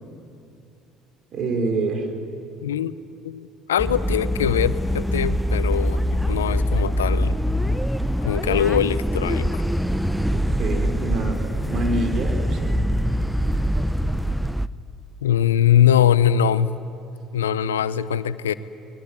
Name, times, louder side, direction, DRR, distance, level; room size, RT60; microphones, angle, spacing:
voice 1, 1.3-2.1 8.5-8.6 10.3-12.8, right 2 dB, 50° right, 4 dB, 4.7 m, -27 dB
voice 2, 2.6-2.9 3.2-7.4 8.2-9.6 15.2-16.7 17.3-18.5, left 9 dB, 90° left, 16 dB, 0.7 m, -22 dB
sound 1, 3.8-14.7, equal, ahead, 0.8 m, -23 dB
24.5 x 21.5 x 9.7 m, 2.5 s
hypercardioid pair, 65°, 0 cm